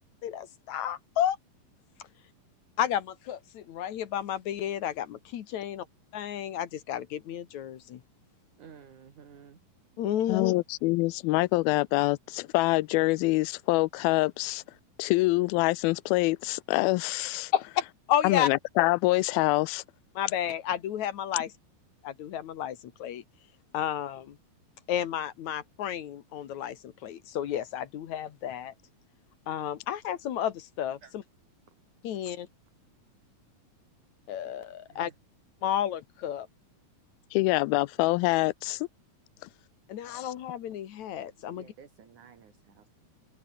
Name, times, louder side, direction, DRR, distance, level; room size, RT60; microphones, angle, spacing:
voice 1, 0.2-1.4 2.8-5.9 6.1-8.0 10.0-10.5 17.5-17.6 18.1-18.5 20.2-21.5 22.0-23.2 23.7-24.4 24.9-28.7 29.5-31.2 32.0-32.5 34.3-35.1 35.6-36.5 39.9-41.7, left 10 dB, 60° left, 2.4 m, -32 dB
voice 2, 8.6-9.6 31.0-31.1 32.3-32.4 34.9-35.1 41.5-42.9, right 7 dB, 55° right, 4.7 m, -53 dB
voice 3, 10.3-14.6 15.0-17.5 18.2-19.8 37.3-38.8 40.1-40.3, left 21 dB, 90° left, 2.5 m, -25 dB
omnidirectional pair, 4.2 m